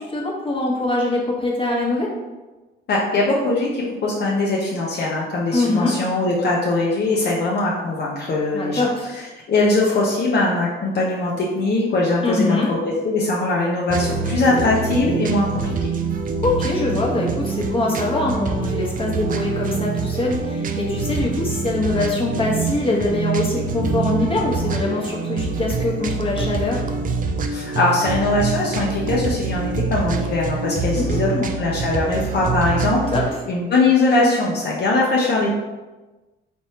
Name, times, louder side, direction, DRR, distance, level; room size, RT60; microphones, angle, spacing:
voice 1, 0.0-2.1 5.5-5.9 8.5-9.1 12.2-12.7 16.4-26.8 30.9-31.4 33.1-33.2, left 2 dB, 25° left, -3 dB, 1.1 m, -23 dB
voice 2, 2.9-8.9 9.5-15.8 27.5-33.0 33.5-35.5, left 2 dB, 55° left, -4 dB, 0.7 m, -21 dB
sound 1, 13.9-33.3, right 4 dB, 45° right, 0.4 m, -25 dB
4.3 x 3.2 x 2.8 m, 1.2 s
cardioid pair, 90°, 20 cm